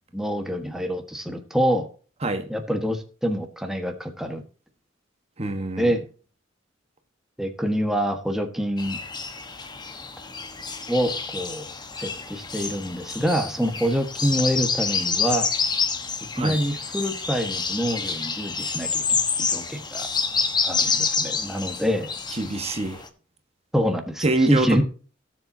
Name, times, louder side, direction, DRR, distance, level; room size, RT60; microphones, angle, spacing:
voice 1, 0.1-1.9 2.5-4.4 5.8-6.0 7.4-9.0 10.9-11.7 12.0-15.5 16.3-20.1 20.6-22.1 23.7-24.8, equal, ahead, 1.4 m, -26 dB
voice 2, 5.4-5.9 16.3-16.6 22.3-23.0 24.2-24.8, right 2 dB, 35° right, 1.3 m, -25 dB
sound 1, 8.8-23.1, left 5 dB, 25° left, 1.2 m, -28 dB
17.5 x 7.4 x 2.7 m
head